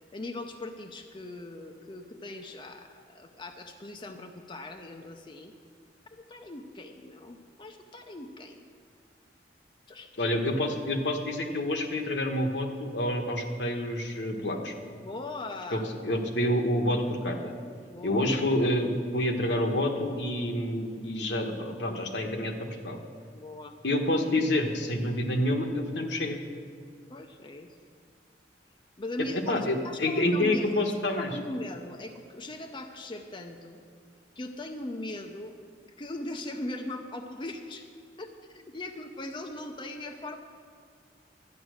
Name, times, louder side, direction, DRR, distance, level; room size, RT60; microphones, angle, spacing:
voice 1, 0.1-5.5 6.1-8.7 9.9-10.3 15.0-15.9 17.9-18.4 23.3-23.7 27.1-27.8 29.0-29.6 29.8-30.6 31.1-33.8 34.4-35.5 36.0-37.9 38.2-40.4, left 2 dB, 30° left, 4 dB, 0.6 m, -40 dB
voice 2, 10.2-14.7 15.7-17.5 18.0-22.6 22.8-23.0 23.8-26.4 29.3-31.4, left 1 dB, 80° left, 3 dB, 1.3 m, -28 dB
12.5 x 9.2 x 6.4 m, 2.2 s
head